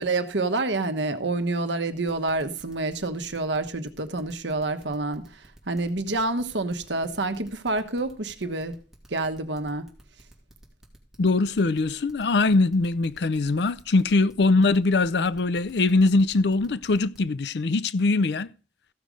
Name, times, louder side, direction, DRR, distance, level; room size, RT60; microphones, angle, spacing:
voice 1, 0.0-8.7 9.1-9.9, right 2 dB, 80° right, 1.2 m, -28 dB
sound 1, 2.1-17.2, right 1 dB, ahead, 2.4 m, -52 dB
voice 2, 11.2-18.5, left 3 dB, 70° left, 0.5 m, -22 dB
15.0 x 6.3 x 5.2 m
head